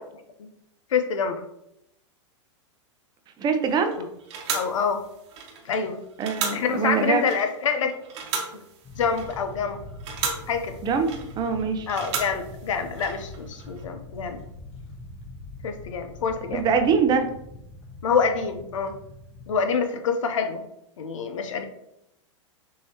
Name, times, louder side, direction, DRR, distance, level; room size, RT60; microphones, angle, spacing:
voice 1, 0.9-1.4 4.0-4.1 4.5-5.0 5.6-6.0 6.5-8.0 9.0-9.8 10.5-10.8 11.9-14.4 15.6-16.6 18.0-19.0 19.5-20.6 21.0-21.6, left 6 dB, 85° left, 7 dB, 0.7 m, -26 dB
voice 2, 3.4-4.0 6.2-7.2 10.8-11.9 16.5-17.3, right 5 dB, 25° right, 7 dB, 0.6 m, -23 dB
sound 1, 3.6-13.8, right 5 dB, 65° right, 1.1 m, -35 dB
sound 2, 8.8-19.6, left 2 dB, 40° left, 1.2 m, -43 dB
6.3 x 2.8 x 2.8 m, 0.79 s
hypercardioid pair, 125°, 16 cm